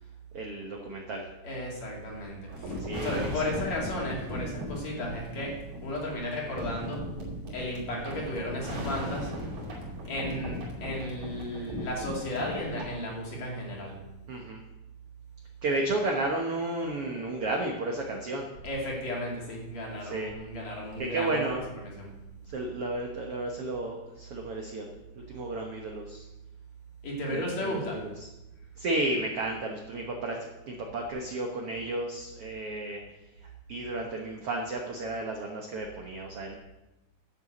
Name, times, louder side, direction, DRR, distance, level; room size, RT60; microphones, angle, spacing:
voice 1, 0.3-1.3 2.8-3.6 14.3-14.6 15.6-18.5 20.0-20.3 21.0-21.6 22.5-26.2 27.3-28.3 28.8-30.4 30.7-33.0 33.4-36.5, right 2 dB, 70° right, 1 dB, 1.4 m, -33 dB
voice 2, 1.4-7.1 7.5-9.3 10.0-14.0 18.6-21.6 22.0-22.1 27.0-28.0, left 1 dB, 50° left, -3 dB, 3.6 m, -34 dB
sound 1, 2.5-12.9, left 1 dB, 50° right, 3.7 m, -38 dB
10.5 x 6.8 x 7.7 m, 0.97 s
omnidirectional pair, 4.4 m